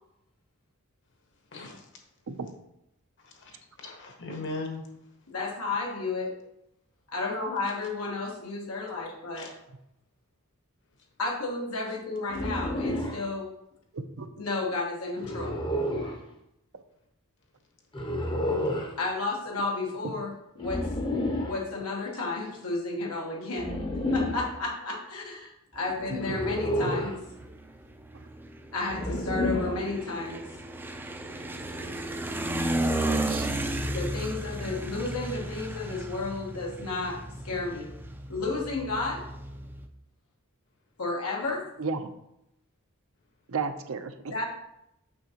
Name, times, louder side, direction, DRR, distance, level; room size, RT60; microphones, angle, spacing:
voice 1, 1.5-1.9 3.2-4.8 9.4-9.5, left 2 dB, 60° left, 2 dB, 1.3 m, -39 dB
voice 2, 5.3-6.4 7.1-9.5 11.2-13.5 14.4-15.6 19.0-20.9 21.4-23.8 24.1-27.2 28.7-30.5 33.9-37.9 38.3-39.3 41.0-41.7 44.3-44.4, left 3 dB, 90° left, 0 dB, 1.4 m, -32 dB
sound 1, 12.3-13.2 15.2-16.2 17.9-18.9 20.6-21.6 23.5-24.5 26.2-27.2 28.9-29.9, left 1 dB, 25° left, 0.7 m, -30 dB
voice 3, 13.9-14.3 18.7-18.8 20.0-20.1 28.1-28.2 33.2-33.5 41.8-42.0 43.5-44.4, right 4 dB, 70° right, 8 dB, 0.6 m, -34 dB
sound 2, 25.8-39.9, right 1 dB, 10° right, 0.4 m, -34 dB
6.3 x 6.0 x 2.9 m, 0.82 s
head